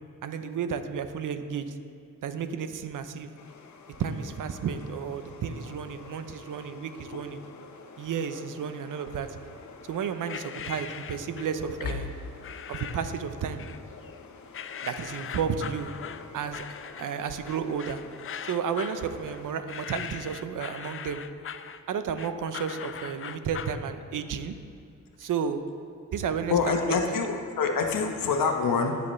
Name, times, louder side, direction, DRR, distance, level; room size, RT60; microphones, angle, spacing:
voice 1, 0.2-1.7 2.2-3.3 4.0-7.4 8.0-9.3 9.9-12.1 12.7-13.6 14.8-15.9 16.3-16.7 16.9-18.0 18.5-21.2 21.9-24.5 25.2-25.6 26.1-27.3, right 7 dB, 70° right, 9 dB, 0.8 m, -32 dB
sound 1, 3.4-19.6, left 5 dB, 55° left, 1.0 m, -48 dB
sound 2, 10.3-11.6 12.4-13.2 13.6-14.2 14.5-23.8, left 8 dB, 40° left, 0.5 m, -40 dB
voice 2, 26.5-29.0, left 5 dB, 75° left, 3 dB, 1.2 m, -26 dB
20.0 x 7.0 x 3.3 m, 2.6 s
cardioid pair, 70°, 33 cm